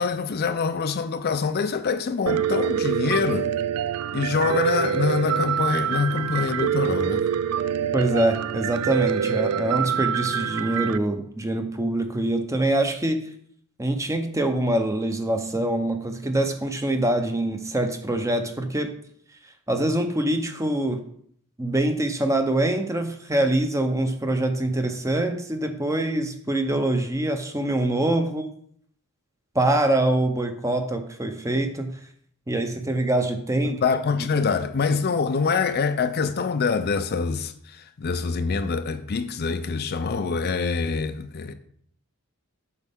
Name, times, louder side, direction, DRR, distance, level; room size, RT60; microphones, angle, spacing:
voice 1, 0.0-3.5 4.1-7.3 33.6-41.5, left 5 dB, 45° left, 0.5 m, -25 dB
Piano, 2.3-11.0, right 8 dB, 85° right, 0.4 m, -25 dB
voice 2, 7.9-13.2 13.8-18.9 19.7-21.0 21.6-28.5 29.5-31.9 32.5-33.8, right 1 dB, 15° right, 0.7 m, -24 dB
8.2 x 6.3 x 3.6 m
head